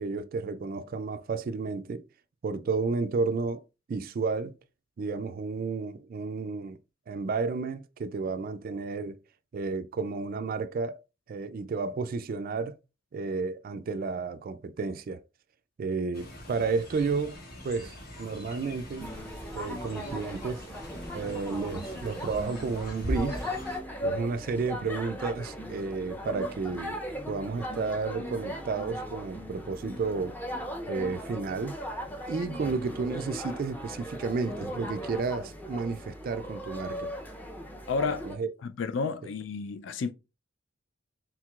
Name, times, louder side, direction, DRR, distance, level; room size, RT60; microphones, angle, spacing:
voice 1, 0.0-2.0 2.4-3.6 3.9-4.5 5.0-6.8 7.1-9.2 9.5-11.0 11.3-12.8 13.1-15.2 15.8-17.4 17.6-17.9 18.2-19.1 19.5-20.7 21.1-23.5 24.0-27.0 27.3-30.4 30.9-31.8 32.3-37.1 38.1-38.5, right 4 dB, 50° right, 0.3 m, -32 dB
Fowl, 16.1-23.8, equal, 55° left, 1.3 m, -41 dB
sound 1, 19.0-38.3, equal, 10° left, 0.6 m, -38 dB
voice 2, 37.9-40.1, left 4 dB, 70° left, 0.4 m, -32 dB
4.5 x 3.8 x 2.4 m
head